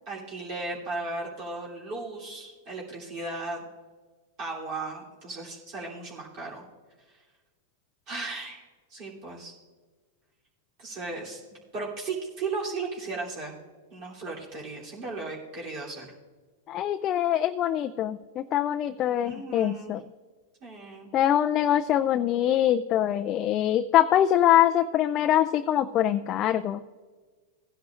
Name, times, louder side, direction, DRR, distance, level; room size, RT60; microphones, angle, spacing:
voice 1, 0.1-3.7 4.4-6.6 7.1-7.2 8.1-8.6 8.9-9.5 10.8-11.4 11.7-13.6 13.9-16.1 19.2-20.0 20.6-21.1, right 3 dB, 45° right, -5 dB, 3.2 m, -36 dB
voice 2, 16.7-20.0 21.1-26.8, left 11 dB, 35° left, 8 dB, 0.4 m, -24 dB
17.5 x 10.5 x 2.5 m, 1.4 s
hypercardioid pair, 115°, 0 cm